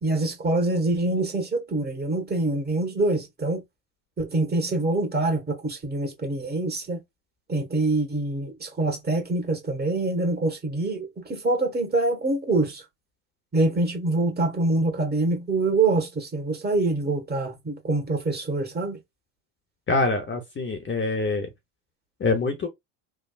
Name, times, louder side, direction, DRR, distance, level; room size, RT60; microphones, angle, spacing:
voice 1, 0.0-3.6 4.2-7.0 7.5-12.8 13.5-19.0, right 2 dB, 20° right, 1.3 m, -25 dB
voice 2, 19.9-21.5 22.2-22.7, left 3 dB, 25° left, 0.8 m, -25 dB
3.4 x 2.2 x 2.3 m
hypercardioid pair, 75°, 48 cm